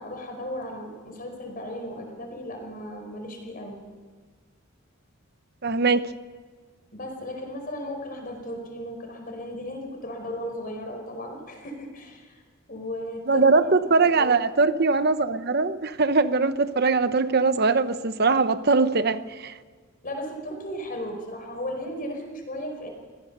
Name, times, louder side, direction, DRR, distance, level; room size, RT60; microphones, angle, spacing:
voice 1, 0.0-3.8 6.9-12.4 12.7-13.4 13.9-14.3 20.0-22.9, equal, 45° left, 4.9 m, -35 dB
voice 2, 5.6-6.0 13.3-19.5, right 4 dB, 50° right, 0.9 m, -21 dB
24.0 x 17.0 x 6.9 m
head